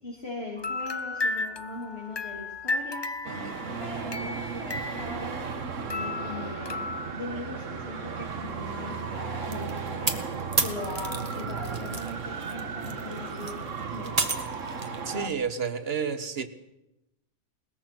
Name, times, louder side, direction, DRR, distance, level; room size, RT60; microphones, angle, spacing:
voice 1, 0.0-3.1 3.8-5.5 5.8-10.2 10.6-13.6 13.9-14.6, left 2 dB, 50° left, -3 dB, 3.4 m, -40 dB
sound 1, 0.6-5.6 5.9-7.2, left 3 dB, 25° left, 0.6 m, -34 dB
Traffic noise roadway noise, 3.2-15.3, right 5 dB, 80° right, 1.7 m, -35 dB
sound 2, 9.5-12.1 12.4-15.0, right 3 dB, 30° right, 1.5 m, -31 dB
voice 2, 15.1-16.5, right 6 dB, 55° right, 11 dB, 1.5 m, -31 dB
21.0 x 20.0 x 6.1 m, 0.89 s
omnidirectional pair, 1.3 m